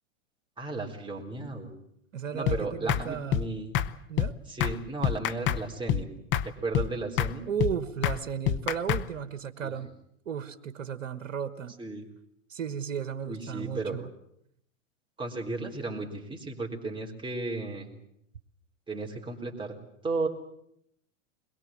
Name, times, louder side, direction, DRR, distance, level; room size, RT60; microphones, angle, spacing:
voice 1, 0.6-1.7 2.3-3.8 4.5-6.1 6.4-7.4 9.6-9.7 11.8-12.1 13.2-14.1 15.2-17.9 18.9-19.8 20.0-20.3, right 3 dB, 10° right, 0 dB, 4.0 m, -34 dB
voice 2, 2.1-3.4 4.1-4.4 7.5-9.9 10.2-11.7 12.5-14.1, right 8 dB, 75° right, 12 dB, 1.4 m, -34 dB
sound 1, 2.5-2.6 2.9-3.0 3.3-3.5 3.7-3.9 4.2-4.3 4.6-4.8 5.0-5.6 5.9-6.0 6.3-6.5 6.7-6.9 7.2-7.3 7.6-7.7 8.0-8.2 8.5-9.0, left 10 dB, 30° left, 0.8 m, -26 dB
22.5 x 22.0 x 7.5 m, 0.73 s
hypercardioid pair, 105°, 39 cm